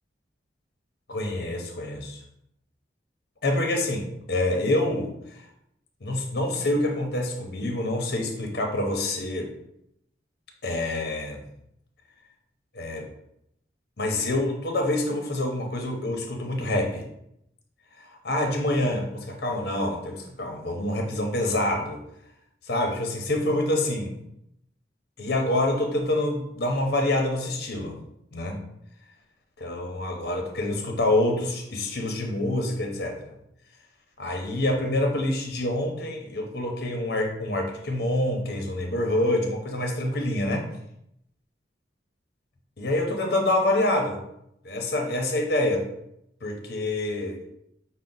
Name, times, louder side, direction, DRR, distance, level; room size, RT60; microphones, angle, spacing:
voice 1, 1.1-2.2 3.4-5.4 6.0-9.5 10.6-11.4 12.7-13.1 14.0-17.0 18.0-22.0 22.7-24.2 25.2-28.0 28.3-28.6 29.6-33.4 34.2-40.7 42.8-44.2 44.6-45.9 46.4-47.4, left 1 dB, 60° left, 2 dB, 0.8 m, -26 dB
5.7 x 2.1 x 3.9 m, 0.78 s
head